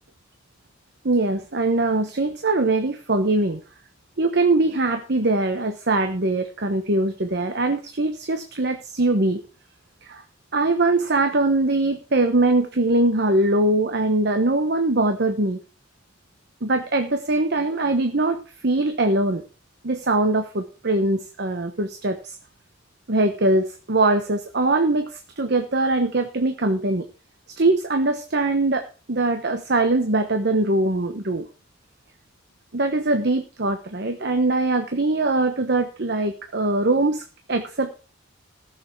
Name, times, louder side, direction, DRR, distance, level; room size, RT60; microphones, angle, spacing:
voice 1, 1.0-3.6 4.2-9.4 10.1-10.2 10.5-15.6 16.6-19.4 19.8-22.4 23.1-27.0 27.6-31.5 32.7-37.2 37.5-37.9, right 2 dB, 55° right, 7 dB, 1.1 m, -22 dB
15.0 x 6.9 x 5.9 m, 0.36 s
head